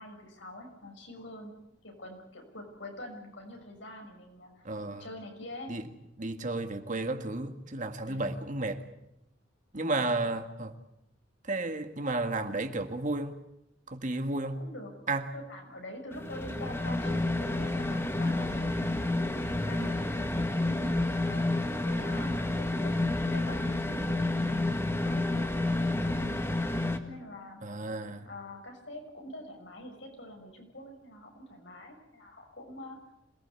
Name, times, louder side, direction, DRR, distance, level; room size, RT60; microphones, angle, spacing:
voice 1, 0.0-1.5 1.8-4.6 5.0-5.8 8.1-8.4 14.5-14.9 15.3-18.9 19.4-21.5 21.8-22.9 23.3-26.4 26.6-27.6 28.3-33.0, left 1 dB, 75° left, 6.5 m, -46 dB
voice 2, 4.6-5.1 5.7-5.9 6.2-8.9 9.7-10.7 11.4-13.4 13.9-14.6 15.1-15.3 19.7-20.0 27.6-28.3, right 2 dB, 40° right, 2.0 m, -33 dB
sound 1, 16.1-27.0, left 2 dB, 15° left, 1.7 m, -30 dB
27.0 x 18.5 x 8.4 m
head